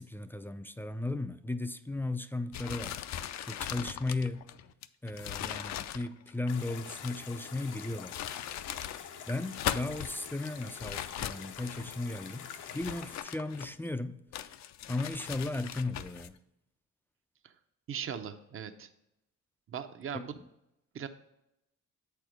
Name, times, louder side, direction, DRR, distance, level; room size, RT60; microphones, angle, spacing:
voice 1, 0.0-3.0 3.5-4.5 5.0-8.2 9.3-14.2 14.9-16.4 20.1-20.2, left 2 dB, 5° left, 0.3 m, -36 dB
sound 1, 2.5-7.3 7.9-9.0 9.4-10.2 10.8-12.0 12.6-13.9 14.3-16.3, left 11 dB, 65° left, 0.5 m, -39 dB
sound 2, 6.5-13.2, left 7 dB, 85° left, 0.8 m, -46 dB
voice 2, 17.9-18.9 19.7-20.4 20.9-21.1, right 8 dB, 45° right, 0.7 m, -39 dB
7.8 x 4.6 x 5.0 m
cardioid pair, 90°, 30 cm